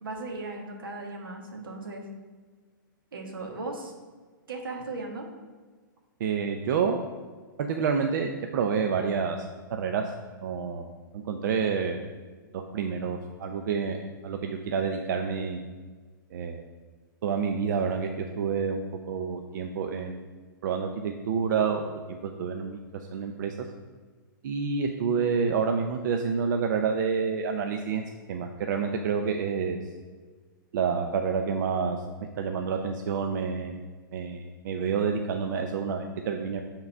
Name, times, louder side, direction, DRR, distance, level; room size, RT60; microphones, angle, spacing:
voice 1, 0.0-2.0 3.1-3.9 4.5-5.3, right 3 dB, 85° right, 1 dB, 1.5 m, -37 dB
voice 2, 6.2-7.0 7.6-10.0 10.4-12.0 12.5-15.6 16.3-16.6 17.2-20.2 20.6-21.8 22.1-22.8 23.1-23.6 24.4-28.0 28.3-29.8 30.7-32.0 32.4-33.8 34.1-36.6, right 6 dB, 60° right, 4 dB, 0.6 m, -28 dB
7.1 x 3.8 x 5.4 m, 1.4 s
hypercardioid pair, 130°, 11 cm